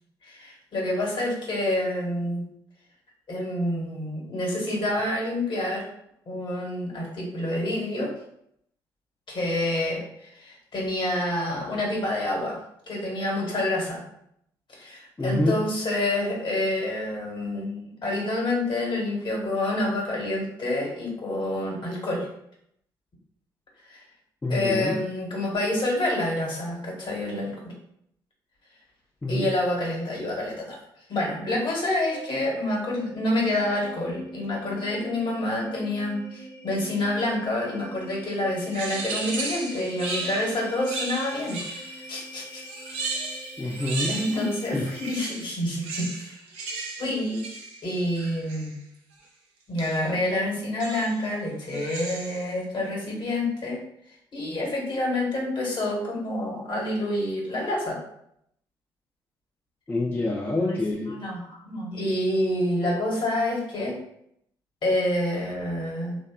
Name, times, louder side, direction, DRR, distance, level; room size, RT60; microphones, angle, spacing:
voice 1, 0.2-2.4 3.3-5.8 6.3-8.1 9.3-12.6 12.9-14.0 14.7-22.3 23.9-24.0 24.5-27.7 29.3-30.8 31.1-42.6 43.6-46.4 47.0-47.5 47.8-48.8 49.7-53.8 54.3-58.0 60.6-60.8 61.1-64.0 64.8-66.2, left 1 dB, 50° left, -2 dB, 1.0 m, -28 dB
voice 2, 15.2-15.7 24.4-25.0 29.2-29.5 43.6-44.2 44.7-44.9 59.9-61.2, left 2 dB, 20° left, -1 dB, 0.4 m, -26 dB
sound 1, 32.0-45.6, equal, 65° left, 0.7 m, -44 dB
sound 2, 38.7-42.1 42.6-44.6 44.9-48.7 49.8-50.1 50.8-51.3 51.7-52.5, right 3 dB, 75° right, 0.4 m, -35 dB
2.7 x 2.2 x 2.2 m, 0.74 s
hypercardioid pair, 50°, 11 cm